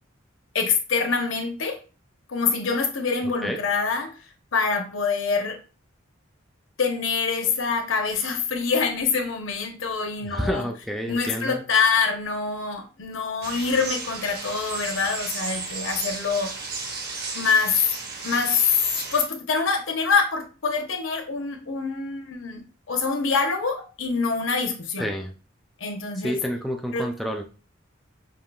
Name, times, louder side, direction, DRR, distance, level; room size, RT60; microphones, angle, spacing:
voice 1, 0.5-1.8 2.3-4.1 4.5-5.6 6.8-10.7 11.1-16.5 17.3-17.8 18.2-18.6 19.1-25.1 25.8-26.4 26.9-27.1, left 5 dB, 80° left, 4 dB, 0.9 m, -25 dB
voice 2, 10.2-11.6 25.0-25.3 26.2-27.4, equal, ahead, 1 dB, 0.3 m, -29 dB
sound 1, 13.4-19.2, right 4 dB, 50° right, 0.9 m, -34 dB
5.5 x 2.8 x 2.3 m, 0.34 s
head